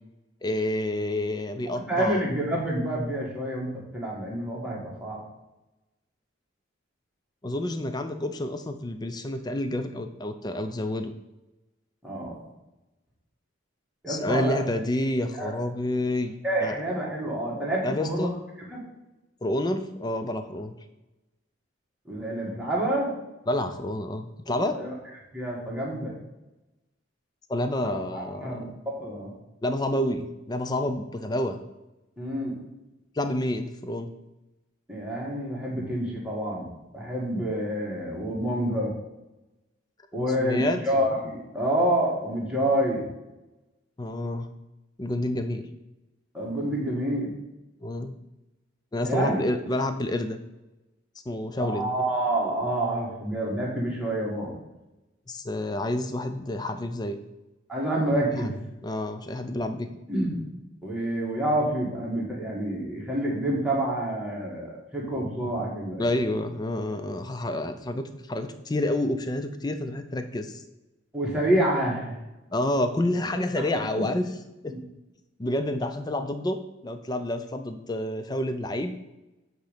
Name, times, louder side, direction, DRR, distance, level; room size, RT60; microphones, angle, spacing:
voice 1, 0.4-2.2 7.4-11.1 14.1-16.3 16.6-16.7 17.8-18.4 19.4-20.8 23.5-24.7 27.5-28.6 29.6-31.6 33.2-34.1 40.1-40.8 44.0-44.5 45.0-45.7 47.8-48.1 48.9-50.4 51.3-51.9 55.3-57.2 58.3-58.5 58.8-59.9 66.0-70.6 72.5-74.3 74.6-74.7 75.4-78.9, left 1 dB, 20° left, 8 dB, 0.4 m, -29 dB
voice 2, 1.9-5.2 12.0-12.4 14.0-14.6 15.3-15.5 16.4-18.3 18.7-18.8 22.0-23.1 24.5-24.9 25.3-26.1 27.8-29.3 32.2-32.6 34.9-38.9 40.1-43.1 46.3-47.3 49.0-49.4 51.6-54.5 57.7-58.6 60.1-60.5 60.8-66.1 71.1-72.2 73.6-73.7 73.9-74.1 74.7-74.8, right 1 dB, 5° right, -5 dB, 1.5 m, -28 dB
7.9 x 3.1 x 5.0 m, 1.0 s
head